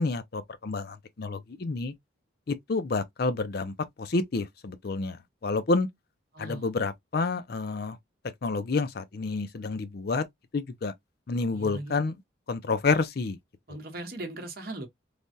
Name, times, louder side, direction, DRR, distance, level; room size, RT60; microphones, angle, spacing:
voice 1, 0.0-1.9 2.5-5.2 5.4-5.9 6.4-8.0 8.4-10.2 10.5-10.9 11.3-12.2 12.5-13.4, left 3 dB, 50° left, 0.5 m, -29 dB
voice 2, 6.3-6.7 11.5-12.0 13.7-14.9, right 2 dB, 50° right, 1.0 m, -38 dB
3.3 x 2.2 x 2.6 m
head